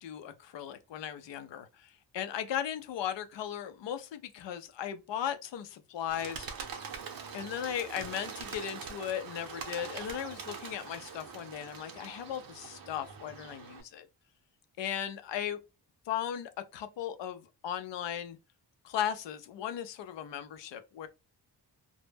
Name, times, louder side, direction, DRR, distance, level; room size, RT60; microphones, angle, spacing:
voice 1, 0.0-6.5 7.3-14.1 14.8-15.6 16.1-18.4 18.8-21.1, left 10 dB, 85° left, 0.5 m, -37 dB
Bird, 6.1-13.8, right 6 dB, 55° right, 0.6 m, -43 dB
2.1 x 2.1 x 3.2 m
wide cardioid pair, 105°, 42 cm